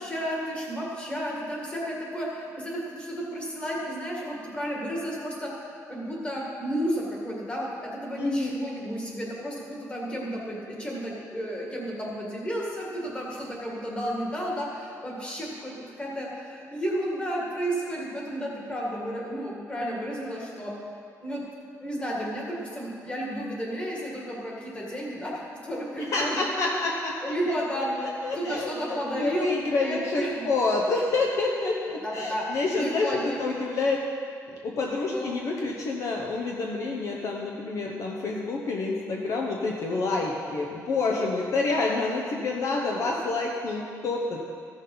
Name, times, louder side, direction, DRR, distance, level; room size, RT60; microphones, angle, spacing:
voice 1, 0.0-5.5 5.9-20.8 21.2-21.4 21.8-26.4 27.2-28.0 28.3-29.5 29.8-30.5 32.0-32.5 32.8-33.4 35.1-35.4, equal, 15° left, -3 dB, 2.0 m, -32 dB
voice 2, 8.2-8.5 26.1-27.1 27.8-34.0 34.6-44.5, left 3 dB, 55° left, -1 dB, 0.9 m, -28 dB
14.5 x 6.4 x 5.5 m, 2.3 s
cardioid pair, 165°, 6 cm